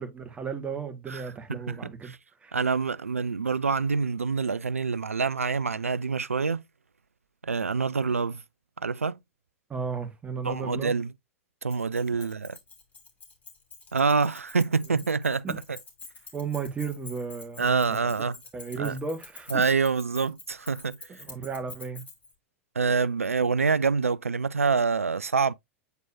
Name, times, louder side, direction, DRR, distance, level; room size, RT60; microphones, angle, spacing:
voice 1, 0.0-2.1 2.4-2.6 9.7-11.0 12.2-12.3 14.9-15.0 15.4-15.6 16.3-18.0 18.5-19.6 21.3-22.0, right 5 dB, 15° right, 1.5 m, -34 dB
voice 2, 1.5-2.2 2.5-6.6 7.4-8.4 8.8-9.2 10.4-11.1 11.6-12.6 13.9-15.8 17.6-18.4 18.8-19.0 19.5-21.0 22.8-25.5, right 5 dB, 80° right, 0.4 m, -26 dB
Keys jangling, 11.7-22.3, left 4 dB, 20° left, 2.9 m, -47 dB
8.1 x 4.5 x 2.6 m
figure-of-eight pair, 95°, 7 cm